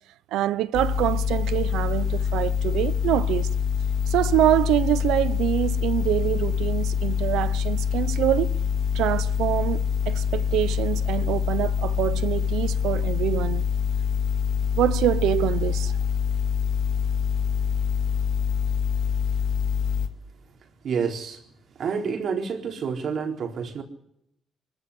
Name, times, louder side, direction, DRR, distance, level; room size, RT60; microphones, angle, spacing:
voice 1, 0.3-3.5 4.1-8.6 8.9-13.6 14.8-15.9, right 13 dB, 90° right, 0.9 m, -25 dB
sound 1, 0.7-20.1, left 7 dB, 85° left, 2.1 m, -25 dB
voice 2, 20.8-21.4 21.8-23.8, right 6 dB, 60° right, 4.0 m, -28 dB
23.5 x 14.0 x 9.8 m
cardioid pair, 90°, 0 cm